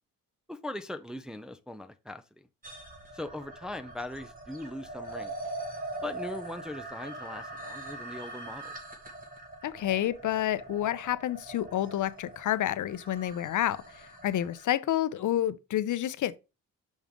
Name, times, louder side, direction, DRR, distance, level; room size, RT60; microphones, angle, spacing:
voice 1, 0.5-2.5 3.1-5.3 6.0-8.7, left 1 dB, ahead, 0.5 m, -40 dB
sound 1, 2.6-14.7, right 2 dB, 25° right, 1.7 m, -42 dB
voice 2, 9.6-16.4, left 12 dB, 65° left, 0.6 m, -29 dB
6.3 x 5.2 x 3.6 m
cardioid pair, 85°, 34 cm